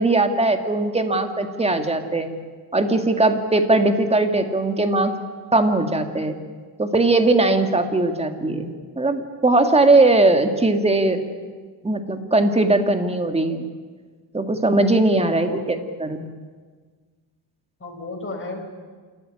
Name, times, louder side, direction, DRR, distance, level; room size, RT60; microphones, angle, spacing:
voice 1, 0.0-2.3 2.7-5.1 5.5-6.4 6.8-11.2 11.8-13.7 14.3-16.3, right 2 dB, 15° right, 6 dB, 2.0 m, -19 dB
voice 2, 15.2-15.7 17.8-18.6, left 2 dB, 25° left, 1 dB, 5.7 m, -33 dB
27.5 x 14.0 x 9.9 m, 1.5 s
cardioid pair, 120°, 46 cm